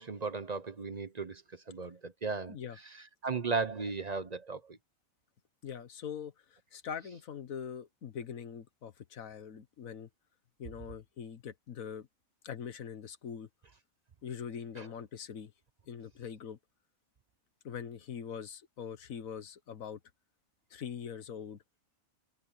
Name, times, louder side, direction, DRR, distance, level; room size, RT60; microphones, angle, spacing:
voice 1, 0.0-1.4 1.7-2.6 3.2-4.8 14.8-14.9, right 4 dB, 35° right, 0.8 m, -35 dB
voice 2, 5.6-10.1 10.6-12.1 12.4-13.5 14.2-15.5 15.9-16.6 17.6-20.0 20.7-21.6, left 7 dB, 85° left, 1.6 m, -42 dB
omnidirectional pair, 1.4 m